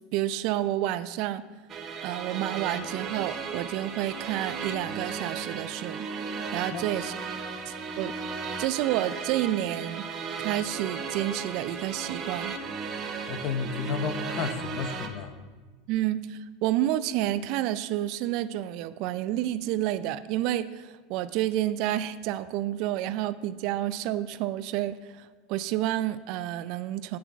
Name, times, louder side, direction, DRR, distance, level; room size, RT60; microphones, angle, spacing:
voice 1, 0.1-1.5 2.0-6.1 6.5-7.1 7.7-8.1 8.6-10.1 10.4-12.5 15.9-27.2, right 13 dB, 55° right, 15 dB, 0.4 m, -29 dB
sound 1, 1.7-15.1, right 5 dB, 35° right, 1.0 m, -35 dB
voice 2, 13.3-15.3, left 6 dB, 50° left, 10 dB, 0.9 m, -32 dB
8.5 x 5.9 x 7.0 m, 1.3 s
supercardioid pair, 130°, 0 cm